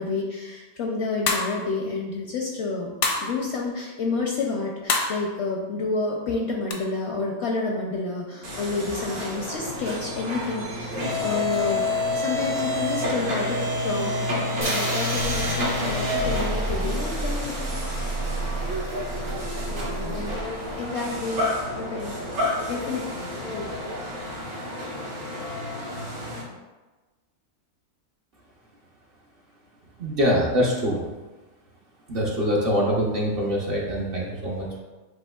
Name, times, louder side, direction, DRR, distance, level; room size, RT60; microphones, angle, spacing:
voice 1, 0.0-2.9 3.2-13.6 13.8-18.5 19.6-23.7, left 3 dB, 65° left, -1 dB, 0.7 m, -30 dB
sound 1, 1.3-1.7 3.0-3.4 4.9-5.2 6.7-6.8, left 4 dB, 80° left, 1.1 m, -25 dB
sound 2, 8.4-26.4, left 1 dB, 80° right, 1.6 m, -28 dB
sound 3, 14.6-18.7, right 1 dB, 15° right, 0.5 m, -37 dB
voice 2, 30.0-31.1 32.1-34.8, equal, 50° right, -3 dB, 0.8 m, -24 dB
7.7 x 2.8 x 2.3 m, 1.2 s
omnidirectional pair, 1.5 m